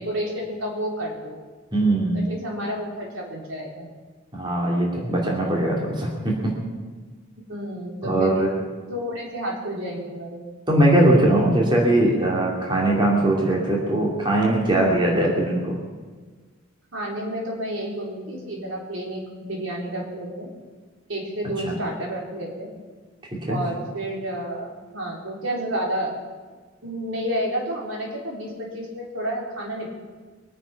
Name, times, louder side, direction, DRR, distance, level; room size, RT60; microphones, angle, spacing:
voice 1, 0.0-1.4 2.1-3.9 7.5-8.4 8.9-10.4 16.9-20.5 21.1-22.7 23.5-26.1 26.8-29.9, right 1 dB, 75° right, -1 dB, 3.7 m, -30 dB
voice 2, 1.7-2.2 4.3-6.5 8.0-8.6 10.7-15.7 21.6-21.7 23.5-23.6, right 1 dB, 25° right, -2 dB, 2.7 m, -20 dB
23.0 x 9.4 x 5.8 m, 1.4 s
head